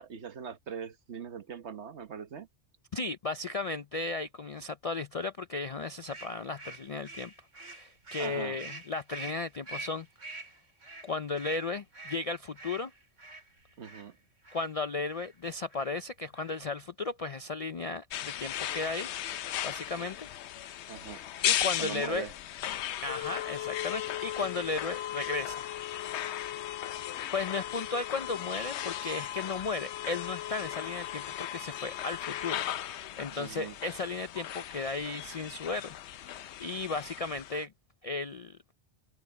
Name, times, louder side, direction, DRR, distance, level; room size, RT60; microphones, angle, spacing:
voice 1, 0.0-2.5 8.2-8.6 13.8-14.2 20.9-21.2 21.8-22.3 33.3-33.7, right 7 dB, 65° right, 1.4 m, -41 dB
voice 2, 2.9-10.1 11.0-12.9 14.5-19.1 19.6-20.3 21.4-22.3 23.0-25.7 27.3-32.6 32.9-36.0 36.2-37.7 38.0-38.6, left 3 dB, 50° left, 0.4 m, -35 dB
sound 1, 6.1-14.1 14.4-14.7 15.1-15.3 15.7-16.0 16.3-16.8, right 2 dB, 85° right, 4.5 m, -46 dB
sound 2, 18.1-37.7, left 11 dB, 70° left, 0.8 m, -36 dB
omnidirectional pair, 1.2 m